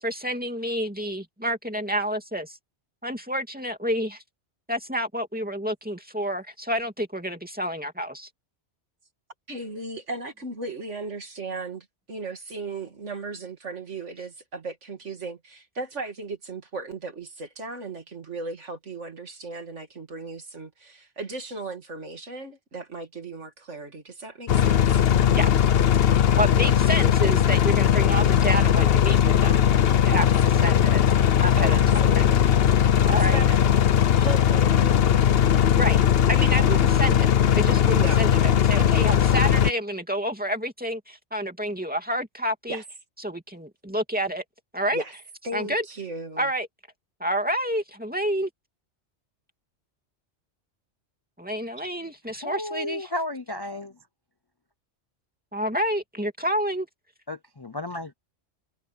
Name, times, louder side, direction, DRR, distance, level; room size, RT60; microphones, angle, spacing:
voice 1, 0.0-2.6 3.0-4.2 4.7-8.3 25.3-25.5 26.4-29.6 30.0-30.2 30.6-31.0 31.4-31.8 32.2-32.3 33.0-33.4 35.8-36.0 36.3-37.3 37.5-41.0 41.3-42.8 43.2-44.4 44.7-45.0 45.5-45.8 46.4-46.7 47.2-48.5 51.4-53.1 55.5-56.9, equal, 5° right, 2.6 m, -29 dB
voice 2, 9.5-25.0 26.8-27.0 30.1-31.0 31.6-32.9 33.3-33.7 34.1-35.3 38.0-38.3 42.7-42.8 44.9-45.1 45.4-46.5, right 3 dB, 80° right, 2.8 m, -36 dB
sound 1, 24.5-39.7, left 9 dB, 60° left, 0.9 m, -19 dB
voice 3, 52.4-53.9 57.3-58.1, left 1 dB, 30° left, 0.5 m, -33 dB
omnidirectional pair, 1.2 m